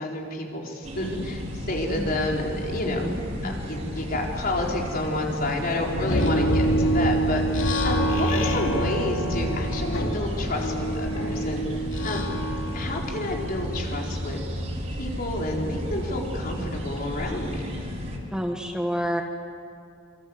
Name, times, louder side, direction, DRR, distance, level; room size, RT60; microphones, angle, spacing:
voice 1, 0.0-3.1 3.4-11.6 12.0-12.2 12.7-14.4 15.0-17.7, left 1 dB, 50° left, -1 dB, 4.4 m, -29 dB
sound 1, 0.8-18.2, equal, 35° right, 4.6 m, -33 dB
sound 2, 5.9-14.3, right 1 dB, 80° left, 2.9 m, -26 dB
voice 2, 18.3-19.2, equal, 5° right, 3 dB, 1.4 m, -29 dB
26.5 x 25.0 x 8.1 m, 2.7 s
head